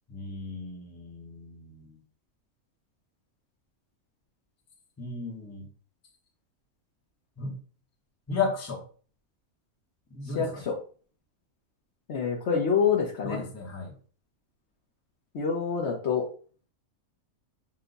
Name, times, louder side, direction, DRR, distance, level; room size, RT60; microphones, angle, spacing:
voice 1, 0.1-2.0 5.0-5.6 7.4-7.6 8.3-8.8 10.1-10.6 13.2-13.9, left 4 dB, 15° left, 1 dB, 0.7 m, -34 dB
voice 2, 10.2-10.8 12.1-13.4 15.3-16.2, left 6 dB, 60° left, 1 dB, 0.9 m, -26 dB
5.8 x 2.3 x 3.9 m, 0.42 s
omnidirectional pair, 1.5 m